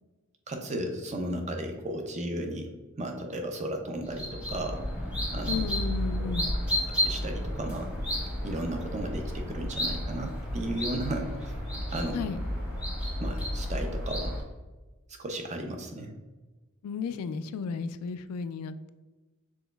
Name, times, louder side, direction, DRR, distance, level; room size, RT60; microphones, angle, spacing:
voice 1, 0.5-2.7 3.0-4.8 5.3-5.7 6.2-6.3 6.9-7.9 8.4-11.6 11.9-12.3 13.2-14.4 15.2-16.1, right 1 dB, 30° right, 4 dB, 0.5 m, -34 dB
sound 1, 4.0-14.4, equal, 5° right, 0.9 m, -32 dB
voice 2, 5.5-6.5 12.1-12.4 16.8-18.9, left 5 dB, 85° left, 15 dB, 0.3 m, -33 dB
6.1 x 3.8 x 2.3 m, 1.2 s
head